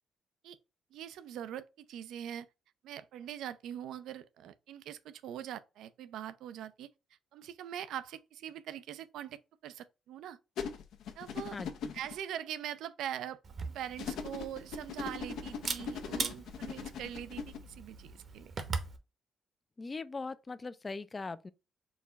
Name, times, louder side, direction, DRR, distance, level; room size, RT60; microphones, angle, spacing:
voice 1, 0.9-2.5 2.8-6.9 7.3-10.4 11.2-11.6 11.9-13.4 13.6-18.5, right 10 dB, 85° right, 0.4 m, -42 dB
sound 1, 10.6-12.1 14.0-17.6, left 6 dB, 80° left, 0.6 m, -40 dB
voice 2, 11.5-11.9 19.8-21.5, left 3 dB, 30° left, 0.4 m, -40 dB
Camera, 13.4-19.0, right 4 dB, 45° right, 0.8 m, -41 dB
4.7 x 2.3 x 3.9 m
cardioid pair, 90°, 0 cm